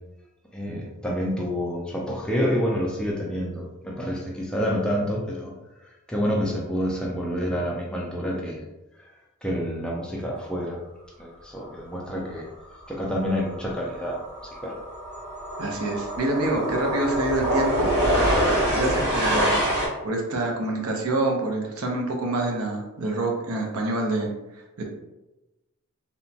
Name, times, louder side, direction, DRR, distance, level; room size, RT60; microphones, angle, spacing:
voice 1, 0.5-5.5 6.1-8.7 9.0-9.1 9.4-10.8 11.2-12.5 12.9-14.8, equal, 5° left, -2 dB, 0.3 m, -28 dB
sound 1, 13.1-13.3 13.6-19.9, equal, 50° right, 0.9 m, -25 dB
voice 2, 15.6-17.9 18.7-19.6 20.0-24.3 24.8-24.9, right 2 dB, 75° right, 1 dB, 0.6 m, -26 dB
2.9 x 2.1 x 2.6 m, 1.0 s
head